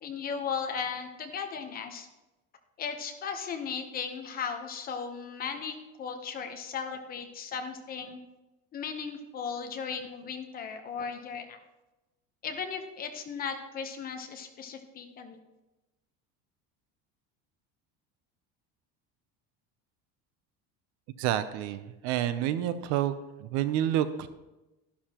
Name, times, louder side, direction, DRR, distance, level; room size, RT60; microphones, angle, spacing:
voice 1, 0.0-2.1 2.8-8.2 8.7-11.6 12.4-15.4, left 6 dB, 25° left, 6 dB, 0.9 m, -36 dB
voice 2, 21.2-23.1 23.4-24.3, right 11 dB, 55° right, 12 dB, 0.7 m, -28 dB
12.5 x 11.5 x 3.0 m, 1.0 s
cardioid pair, 180°, 34 cm